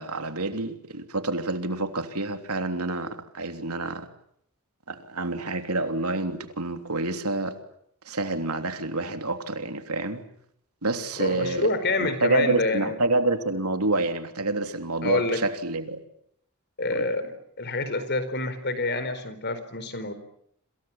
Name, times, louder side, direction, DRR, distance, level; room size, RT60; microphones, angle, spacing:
voice 1, 0.0-4.1 4.9-7.5 8.1-10.2 10.8-11.7 12.0-16.0 16.9-17.1, right 2 dB, 90° right, 7 dB, 3.3 m, -28 dB
voice 2, 11.2-13.0 15.0-15.4 16.8-17.3 17.6-20.1, left 2 dB, 50° left, 12 dB, 4.5 m, -27 dB
28.0 x 27.0 x 7.4 m, 0.71 s
head